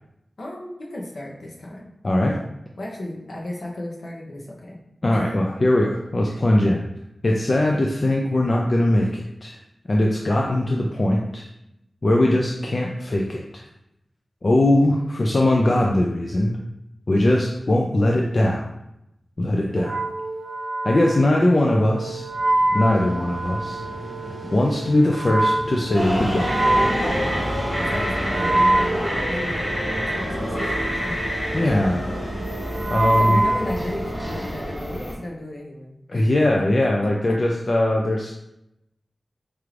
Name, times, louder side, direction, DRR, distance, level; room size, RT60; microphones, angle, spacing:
voice 1, 0.4-1.9 2.8-4.8 5.1-5.3 6.3-6.4 27.8-28.9 29.2-29.6 30.1-31.2 31.6-31.8 32.5-36.3 37.3-37.4, left 1 dB, 65° left, -2 dB, 0.8 m, -35 dB
voice 2, 2.0-2.4 5.0-6.8 7.2-9.6 9.9-11.5 12.0-13.6 14.4-16.5 17.1-18.7 19.4-20.1 20.8-22.3 22.7-23.8 24.5-26.7 31.5-32.0 32.9-33.4 36.1-38.4, left 1 dB, 45° left, -1 dB, 0.4 m, -20 dB
Wind instrument woodwind instrument, 19.7-34.5, right 2 dB, 60° right, 0.3 m, -26 dB
Vehicle, 22.1-31.0, equal, 85° left, 1.2 m, -39 dB
sound 1, 25.9-35.1, equal, 15° left, 1.4 m, -26 dB
4.6 x 2.5 x 3.2 m, 0.85 s
wide cardioid pair, 95°, 0 cm